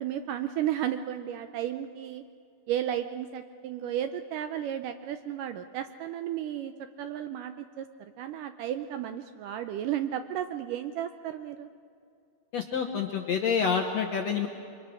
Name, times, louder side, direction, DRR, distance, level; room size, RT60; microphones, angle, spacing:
voice 1, 0.0-2.2 2.7-6.7 7.0-7.9 8.2-11.7, right 11 dB, 80° right, 9 dB, 2.0 m, -33 dB
voice 2, 12.5-14.5, left 6 dB, 65° left, 2 dB, 1.7 m, -28 dB
27.5 x 23.5 x 6.3 m, 2.5 s
omnidirectional pair, 4.4 m